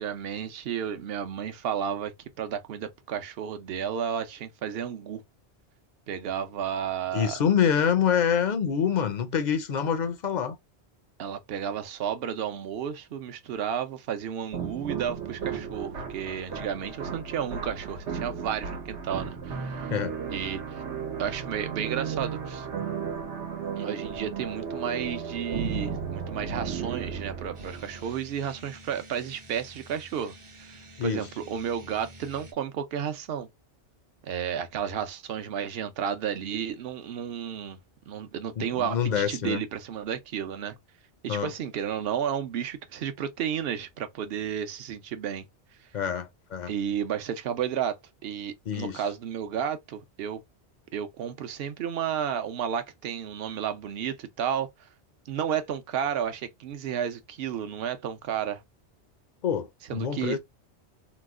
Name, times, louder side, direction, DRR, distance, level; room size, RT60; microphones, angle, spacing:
voice 1, 0.0-5.2 6.1-7.4 11.2-19.9 20.3-20.8 21.2-22.7 23.7-30.3 30.6-33.5 34.2-37.8 38.1-40.8 41.2-45.4 46.7-50.4 50.9-54.9 55.3-58.6 59.8-60.4, right 8 dB, 65° right, 0.8 m, -32 dB
voice 2, 7.1-10.6 19.9-20.1 31.0-31.2 38.6-39.6 41.3-41.5 45.9-46.7 48.7-49.0 59.4-59.7 59.9-60.4, left 8 dB, 55° left, 0.6 m, -26 dB
sound 1, 14.5-28.2, right 6 dB, 85° right, 1.1 m, -35 dB
sound 2, 27.5-32.5, right 1 dB, 35° right, 0.6 m, -49 dB
3.0 x 2.0 x 3.5 m
omnidirectional pair, 1.1 m